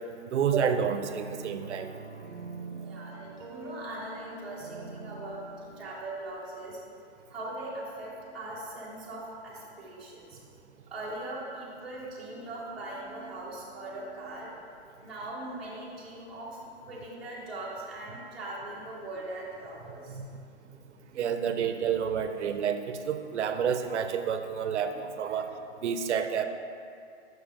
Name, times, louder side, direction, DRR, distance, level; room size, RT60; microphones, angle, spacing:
voice 1, 0.3-1.9 20.1-20.3 21.2-25.5 25.8-26.5, right 7 dB, 75° right, 8 dB, 0.6 m, -29 dB
sound 1, 0.7-5.8, right 3 dB, 40° right, 0.8 m, -44 dB
voice 2, 2.7-6.8 7.3-10.4 10.9-14.5 15.0-16.5 16.9-20.2 21.1-21.3 25.2-25.5, right 2 dB, ahead, -12 dB, 0.8 m, -40 dB
7.0 x 6.1 x 3.5 m, 2.4 s
hypercardioid pair, 170°, 34 cm